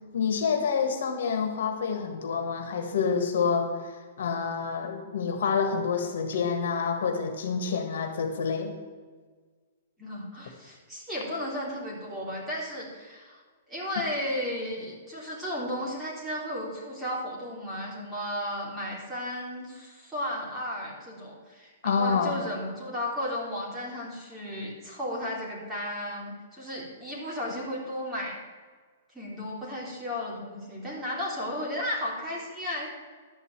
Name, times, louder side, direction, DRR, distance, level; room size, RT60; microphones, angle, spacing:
voice 1, 0.1-8.8 21.8-22.4, left 5 dB, 75° left, 5 dB, 1.7 m, -28 dB
voice 2, 10.0-13.4 13.7-28.4 29.1-32.9, left 1 dB, 10° right, -5 dB, 3.4 m, -34 dB
12.0 x 5.4 x 9.0 m, 1.5 s
hypercardioid pair, 155°, 0 cm